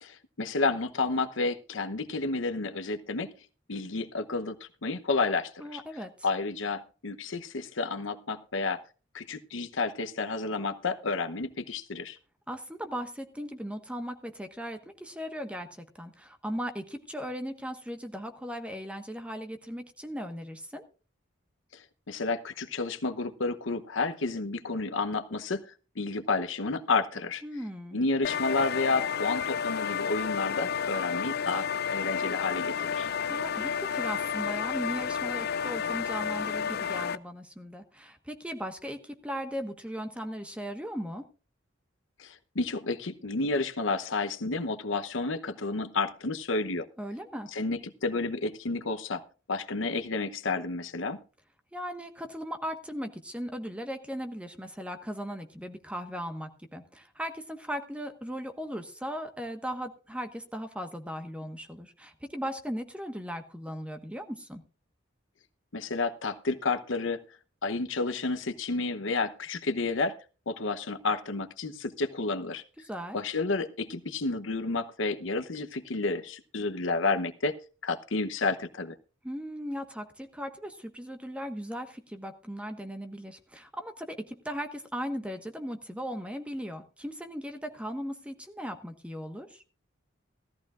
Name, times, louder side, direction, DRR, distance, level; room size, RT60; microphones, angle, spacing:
voice 1, 0.0-3.3 3.7-4.6 4.8-5.8 6.2-8.8 9.1-12.2 21.7-25.6 26.0-27.4 27.9-33.1 42.2-46.9 47.5-49.2 49.5-51.2 65.7-67.2 67.6-70.2 70.5-72.6 73.1-77.5 77.8-78.9, left 3 dB, 70° left, 9 dB, 0.9 m, -31 dB
voice 2, 5.6-6.1 12.5-20.8 27.4-28.0 33.3-41.2 47.0-47.5 51.7-64.6 72.8-73.2 79.2-89.6, equal, 5° right, 6 dB, 1.3 m, -37 dB
annoying generator, 28.2-37.2, left 7 dB, 55° left, 0.5 m, -31 dB
17.0 x 14.0 x 2.5 m, 0.35 s
head